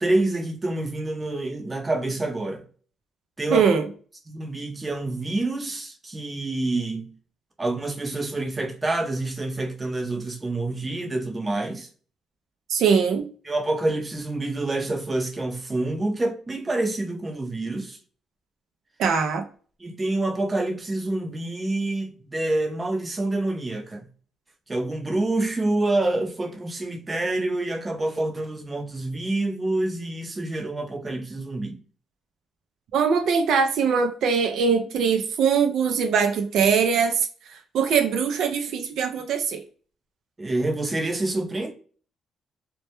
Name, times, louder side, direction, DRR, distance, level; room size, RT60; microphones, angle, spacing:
voice 1, 0.0-2.6 3.4-3.7 4.3-7.1 7.6-11.9 13.4-18.0 19.8-24.1 24.7-31.8 40.4-41.7, right 2 dB, 20° right, 0.6 m, -27 dB
voice 2, 3.5-3.9 12.7-13.3 19.0-19.4 32.9-39.6, right 6 dB, 75° right, 0.3 m, -22 dB
2.1 x 2.1 x 2.8 m
cardioid pair, 90°, 0 cm